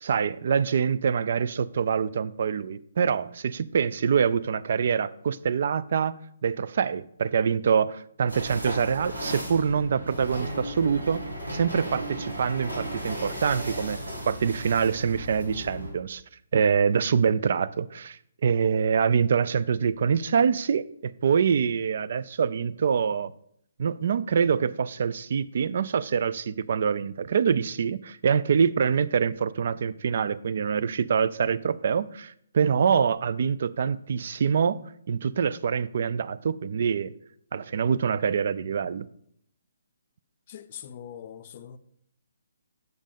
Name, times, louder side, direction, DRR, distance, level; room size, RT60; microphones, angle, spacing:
voice 1, 0.0-6.2 6.4-11.2 11.5-14.0 14.3-16.2 16.5-23.3 23.8-34.8 35.1-37.1 37.5-39.1, right 6 dB, 55° right, 0.3 m, -25 dB
sound 1, 8.3-15.9, equal, 85° right, 2.5 m, -35 dB
voice 2, 40.5-41.8, left 9 dB, 40° left, 0.5 m, -42 dB
6.3 x 5.2 x 5.1 m
figure-of-eight pair, 140°, 0 cm